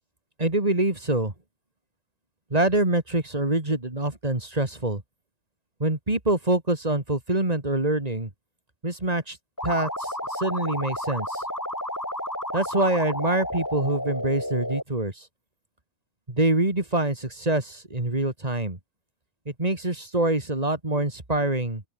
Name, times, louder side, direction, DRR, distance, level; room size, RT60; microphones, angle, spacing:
voice 1, 0.4-1.3 2.5-5.0 5.8-8.3 8.8-9.4 9.6-11.4 12.5-15.3 16.3-18.8 19.5-21.8, right 2 dB, 25° right, 3.2 m, -25 dB
sound 1, 9.6-14.8, left 1 dB, 10° left, 4.4 m, -31 dB
open air
omnidirectional pair, 1.6 m